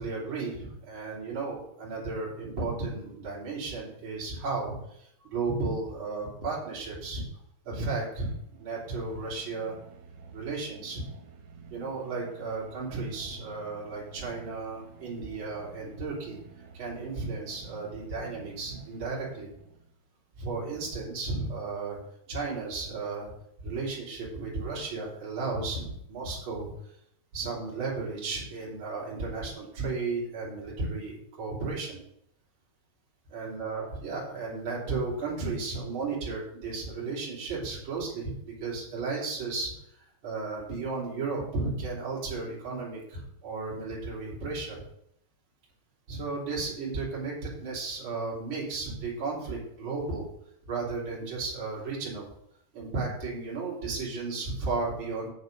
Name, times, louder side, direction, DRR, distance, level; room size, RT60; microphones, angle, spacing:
voice 1, 0.0-7.2 7.6-9.8 10.3-11.0 11.7-16.4 16.7-19.5 20.4-22.0 22.3-23.3 23.6-26.7 27.3-32.0 33.3-39.7 40.2-44.8 46.1-50.3 50.6-52.3 52.7-55.3, right 3 dB, 30° right, -6 dB, 3.8 m, -34 dB
sound 1, 8.4-20.0, right 4 dB, 90° right, 3.9 m, -50 dB
8.1 x 6.6 x 5.5 m, 0.74 s
omnidirectional pair, 5.0 m